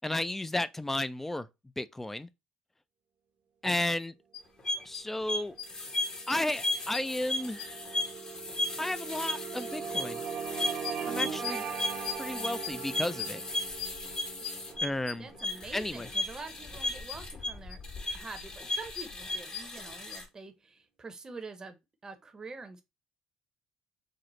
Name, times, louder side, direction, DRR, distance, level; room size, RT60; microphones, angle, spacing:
voice 1, 0.0-1.5 1.8-2.3 3.6-4.1 4.8-5.6 6.3-7.6 8.8-10.2 11.1-11.6 12.2-13.4 14.8-15.3 15.7-16.1, left 1 dB, 10° left, 0.4 m, -33 dB
sound 1, 4.3-20.2, left 2 dB, 35° left, 0.9 m, -35 dB
sound 2, 5.5-17.9, right 7 dB, 65° right, 0.8 m, -41 dB
voice 2, 15.2-17.8 18.1-22.8, right 3 dB, 25° right, 0.7 m, -46 dB
4.1 x 2.0 x 3.0 m
supercardioid pair, 75°, 2 cm